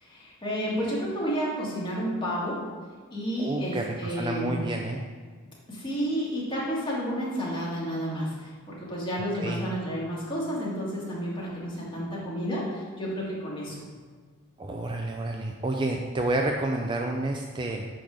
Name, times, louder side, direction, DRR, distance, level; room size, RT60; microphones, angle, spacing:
voice 1, 0.0-2.7 3.1-4.6 5.7-13.8, equal, 20° left, -6 dB, 2.0 m, -31 dB
voice 2, 3.4-5.0 9.3-9.6 14.6-17.9, right 2 dB, 20° right, 2 dB, 0.4 m, -29 dB
8.6 x 3.8 x 6.3 m, 1.5 s
head